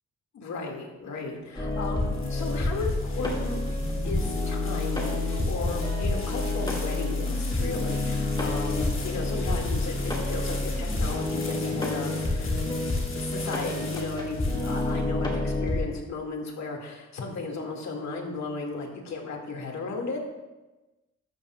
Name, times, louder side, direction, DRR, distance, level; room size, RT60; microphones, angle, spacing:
voice 1, 0.3-12.6 13.1-20.2, left 3 dB, 70° left, 1 dB, 2.1 m, -35 dB
sound 1, 1.5-15.3, left 3 dB, 45° left, 2.4 m, -42 dB
sound 2, 1.6-15.8, left 2 dB, 15° left, 1.9 m, -28 dB
14.0 x 12.5 x 2.4 m, 1.1 s
wide cardioid pair, 175°, 29 cm